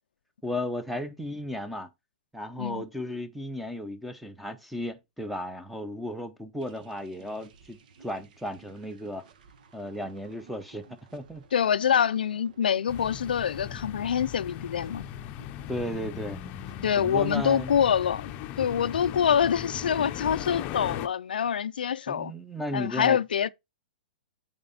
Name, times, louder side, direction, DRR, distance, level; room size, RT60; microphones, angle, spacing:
voice 1, 0.4-1.9 2.3-9.2 9.7-11.4 15.7-16.4 17.0-17.7 22.1-23.2, left 1 dB, ahead, 0.9 m, -35 dB
sound 1, 6.6-17.7, right 5 dB, 60° right, 1.2 m, -55 dB
voice 2, 11.5-15.0 16.8-18.3 18.6-22.3 22.7-23.5, left 8 dB, 80° left, 0.4 m, -25 dB
sound 2, 12.9-21.1, left 11 dB, 35° left, 0.7 m, -38 dB
8.6 x 4.3 x 4.2 m
hypercardioid pair, 130°, 5 cm